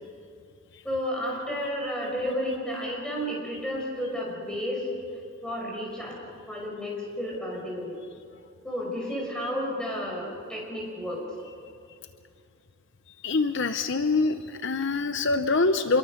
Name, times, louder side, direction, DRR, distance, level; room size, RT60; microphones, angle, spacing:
voice 1, 0.8-4.8 5.4-6.2 6.5-8.0 8.6-11.2, equal, 5° left, -2 dB, 5.7 m, -32 dB
voice 2, 13.2-16.0, left 3 dB, 60° left, 9 dB, 0.7 m, -25 dB
26.0 x 22.5 x 6.6 m, 2.4 s
head